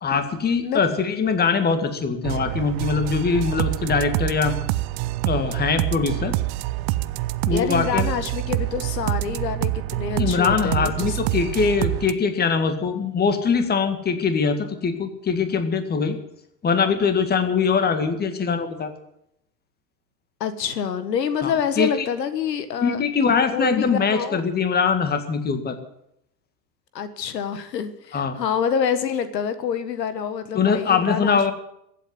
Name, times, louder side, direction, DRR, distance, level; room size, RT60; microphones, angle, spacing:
voice 1, 0.0-4.5 5.3-6.3 7.5-8.1 10.2-16.2 16.6-18.9 21.4-22.1 22.8-25.8 28.1-28.4 30.5-31.5, left 5 dB, 20° left, 8 dB, 2.0 m, -22 dB
sound 1, 2.2-12.1, right 17 dB, 35° right, 0.5 m, -26 dB
voice 2, 7.5-11.2 20.4-23.0 23.5-24.5 26.9-31.5, left 7 dB, 80° left, 11 dB, 1.6 m, -27 dB
15.0 x 8.4 x 9.6 m, 0.77 s
hypercardioid pair, 110°, 49 cm